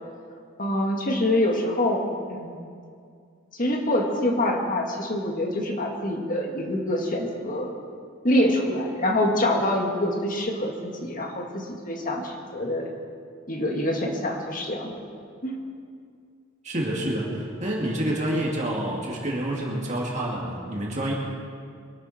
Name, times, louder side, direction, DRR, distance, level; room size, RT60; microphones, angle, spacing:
voice 1, 0.6-2.0 2.3-2.6 3.5-7.7 8.2-12.9 13.5-14.9 15.4-15.6, left 1 dB, 40° left, 1 dB, 2.1 m, -25 dB
voice 2, 16.6-21.1, right 1 dB, 35° right, -3 dB, 2.4 m, -28 dB
23.5 x 12.0 x 4.4 m, 2.3 s
head